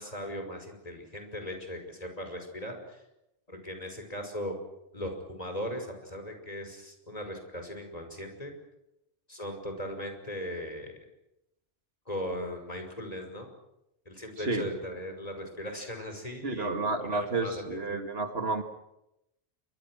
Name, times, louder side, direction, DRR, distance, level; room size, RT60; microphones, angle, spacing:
voice 1, 0.0-3.0 3.5-4.5 4.9-8.5 9.3-10.9 12.1-13.5 14.1-18.0, equal, 35° left, 5 dB, 5.7 m, -38 dB
voice 2, 14.4-14.7 16.4-18.6, right 3 dB, 65° right, 7 dB, 2.4 m, -31 dB
28.5 x 24.0 x 6.3 m, 0.87 s
omnidirectional pair, 1.1 m